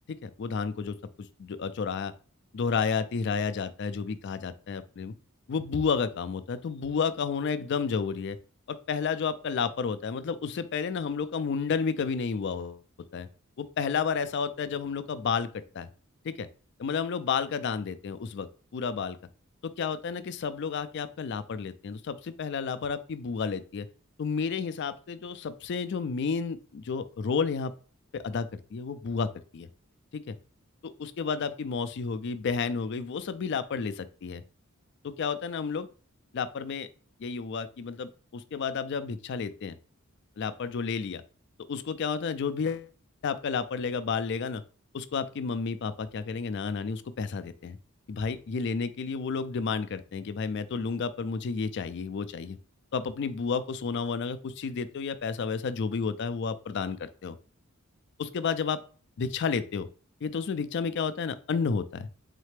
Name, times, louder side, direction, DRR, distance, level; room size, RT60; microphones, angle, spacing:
voice 1, 0.1-0.9 1.4-2.1 2.5-5.1 5.5-8.4 8.7-12.8 13.1-13.3 13.6-15.5 15.7-15.9 16.2-16.5 16.8-19.2 19.6-23.9 24.2-27.7 28.1-29.7 30.1-30.3 30.8-34.4 35.0-35.9 36.3-36.9 37.2-39.8 40.4-41.2 41.7-42.9 43.2-44.6 44.9-47.8 48.1-52.6 52.9-57.4 58.2-58.8 59.2-59.9 60.2-62.1, left 5 dB, 55° left, 13 dB, 0.4 m, -31 dB
4.1 x 3.2 x 3.2 m, 0.39 s
head